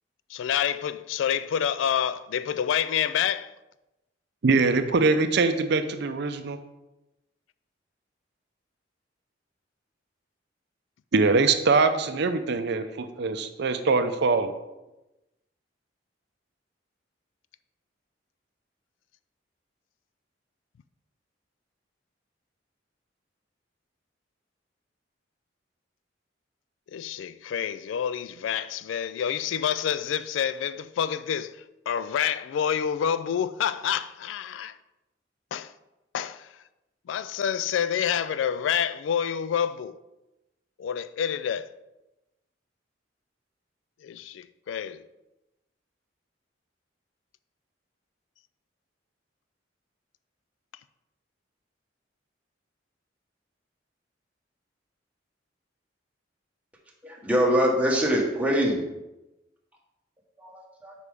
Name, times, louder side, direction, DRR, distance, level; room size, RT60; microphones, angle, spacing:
voice 1, 0.3-3.5 26.9-34.7 35.5-35.7 36.1-36.5 37.1-40.0 40.8-41.7 44.0-45.1, left 8 dB, 80° left, 0.3 m, -28 dB
voice 2, 4.4-6.6 11.1-14.5, right 4 dB, 60° right, 0.5 m, -23 dB
voice 3, 57.0-58.8 60.4-60.9, equal, 10° right, 1.2 m, -24 dB
8.3 x 5.0 x 3.5 m
head